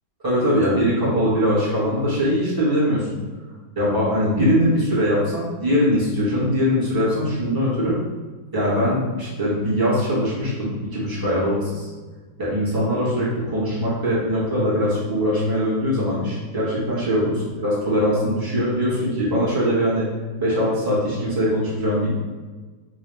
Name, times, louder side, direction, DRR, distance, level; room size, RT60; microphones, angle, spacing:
voice 1, 0.2-3.1 3.7-8.0 8.5-11.9 12.4-20.1 20.4-22.1, equal, 15° right, -8 dB, 0.8 m, -21 dB
3.9 x 2.6 x 3.3 m, 1.3 s
omnidirectional pair, 2.3 m